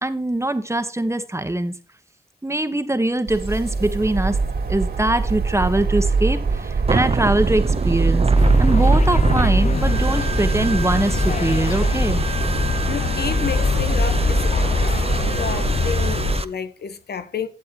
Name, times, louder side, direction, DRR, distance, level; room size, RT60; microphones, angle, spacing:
voice 1, 0.0-1.7 2.4-4.4 4.7-8.3 8.6-12.2, right 1 dB, 15° right, 1.3 m, -22 dB
sound 1, 3.3-16.4, right 4 dB, 80° right, 3.2 m, -23 dB
sound 2, 6.9-16.4, right 4 dB, 35° right, 0.9 m, -27 dB
sound 3, 8.4-16.4, left 5 dB, 50° left, 0.6 m, -24 dB
voice 2, 12.9-14.4 14.8-15.0 15.4-17.5, left 6 dB, 85° left, 1.1 m, -30 dB
12.0 x 7.6 x 3.0 m
cardioid pair, 55°, 16 cm